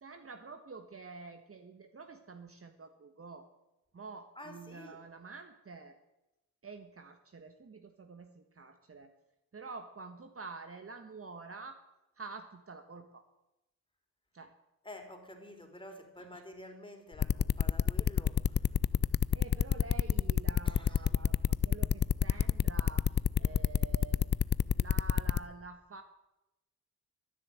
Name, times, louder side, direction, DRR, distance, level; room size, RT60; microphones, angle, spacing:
voice 1, 0.0-3.5 3.9-6.0 6.6-9.1 9.5-11.8 12.2-13.2 14.3-14.5 16.3-16.4 19.3-23.1 23.4-24.2 24.7-26.0, right 4 dB, 40° right, 7 dB, 1.4 m, -48 dB
voice 2, 4.4-5.1 14.8-18.7 20.6-21.2, left 1 dB, 15° left, 5 dB, 3.7 m, -50 dB
sound 1, 17.2-25.4, left 8 dB, 30° left, 0.5 m, -27 dB
13.0 x 10.5 x 7.7 m, 0.95 s
supercardioid pair, 50°, 36 cm